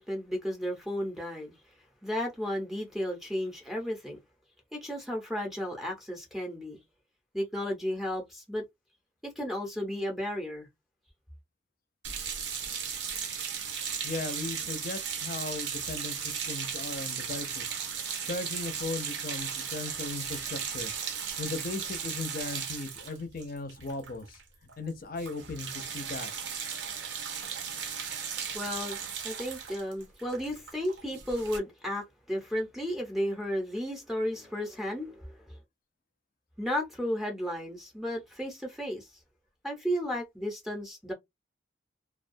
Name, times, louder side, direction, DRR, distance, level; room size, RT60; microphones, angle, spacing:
voice 1, 0.0-1.5 2.0-4.2 4.7-6.8 7.3-8.6 9.2-10.7 28.5-29.0 29.2-35.6 36.6-39.1 39.6-41.1, equal, ahead, 0.6 m, -33 dB
sound 1, 12.0-24.4 24.7-24.9 25.2-31.6, right 7 dB, 65° right, 0.6 m, -36 dB
voice 2, 14.0-17.8 18.2-24.4 24.8-26.3, left 3 dB, 50° left, 0.6 m, -37 dB
2.3 x 2.2 x 2.5 m
head